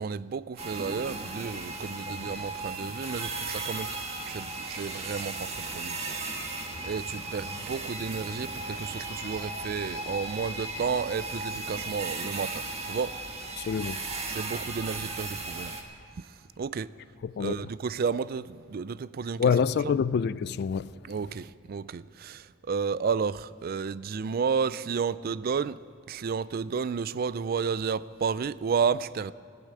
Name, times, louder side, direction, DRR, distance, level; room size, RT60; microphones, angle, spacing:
voice 1, 0.0-4.0 4.3-6.2 6.8-13.1 14.3-15.7 16.2-16.3 16.6-16.9 17.4-19.5 21.1-25.8 26.1-29.3, right 6 dB, 50° right, 0.4 m, -32 dB
sound 1, 0.6-15.8, right 2 dB, 30° right, 1.5 m, -36 dB
voice 2, 13.6-14.0 17.2-17.6 19.4-21.0, left 6 dB, 55° left, 0.3 m, -27 dB
15.5 x 10.0 x 9.0 m
head